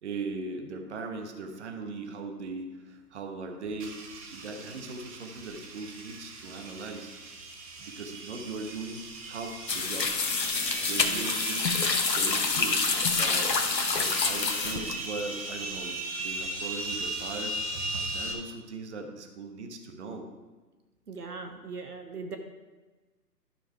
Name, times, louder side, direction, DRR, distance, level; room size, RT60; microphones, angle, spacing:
voice 1, 0.0-7.1 7.8-10.1 10.8-11.7 12.1-13.5 13.9-20.3 21.5-21.6, right 3 dB, 45° right, 4 dB, 1.3 m, -39 dB
sound 1, 3.8-18.3, right 2 dB, 20° right, 1.1 m, -38 dB
sound 2, 9.7-15.2, left 4 dB, 80° left, 1.4 m, -27 dB
voice 2, 21.1-22.4, right 4 dB, 65° right, 5 dB, 1.3 m, -39 dB
12.0 x 6.2 x 4.7 m, 1.2 s
figure-of-eight pair, 145°, 49 cm